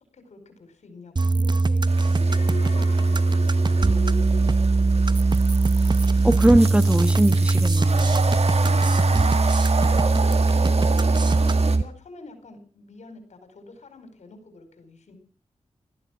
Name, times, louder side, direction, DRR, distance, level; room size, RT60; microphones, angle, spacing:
voice 1, 0.1-5.2 8.6-9.4 9.8-11.0 11.4-15.2, left 3 dB, 85° left, 4.6 m, -46 dB
sound 1, 1.2-11.8, right 3 dB, 40° right, 0.8 m, -20 dB
sound 2, 1.9-11.8, right 4 dB, 65° right, 2.0 m, -31 dB
Alarm, 2.2-5.5 5.9-6.2, left 3 dB, 65° left, 1.9 m, -39 dB
voice 2, 6.2-8.4, right 1 dB, 10° right, 1.3 m, -21 dB
17.0 x 14.0 x 6.0 m
cardioid pair, 55°, 12 cm